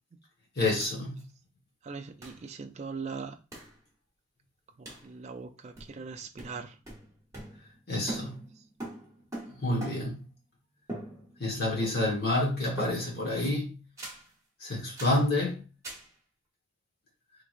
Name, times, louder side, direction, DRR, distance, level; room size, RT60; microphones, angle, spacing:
voice 1, 0.6-1.2 7.9-8.3 9.6-10.2 11.4-13.8 14.6-15.6, left 2 dB, 45° left, 1.3 m, -28 dB
sound 1, 0.8-0.9 1.2-1.3 2.2-2.4 3.5-3.8 4.8-5.1 5.8-6.1 6.4-7.8 8.1-10.2 10.9-11.5 11.8-12.3 12.8-13.3 14.0-14.3 15.0-15.3 15.8-16.1, right 1 dB, 15° right, 1.1 m, -42 dB
voice 2, 1.8-3.4 4.8-6.7, right 5 dB, 30° right, 0.4 m, -40 dB
3.5 x 3.0 x 2.5 m
head